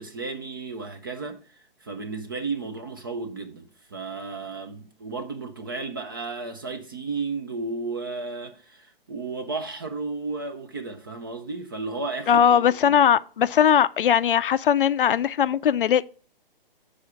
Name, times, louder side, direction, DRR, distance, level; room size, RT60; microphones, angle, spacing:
voice 1, 0.0-12.8, right 3 dB, 25° right, 0.4 m, -33 dB
voice 2, 12.3-16.0, left 9 dB, 65° left, 0.4 m, -19 dB
6.2 x 4.9 x 5.7 m
figure-of-eight pair, 140°, 29 cm